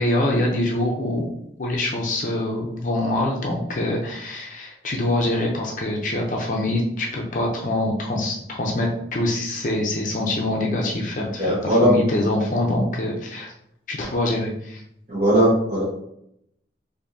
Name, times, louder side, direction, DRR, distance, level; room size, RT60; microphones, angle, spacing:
voice 1, 0.0-1.3 1.6-13.5 13.9-14.8, left 1 dB, 45° left, -1 dB, 0.5 m, -24 dB
voice 2, 11.4-11.9 15.1-15.8, equal, 40° right, -10 dB, 1.0 m, -18 dB
4.5 x 2.6 x 2.6 m, 0.76 s
head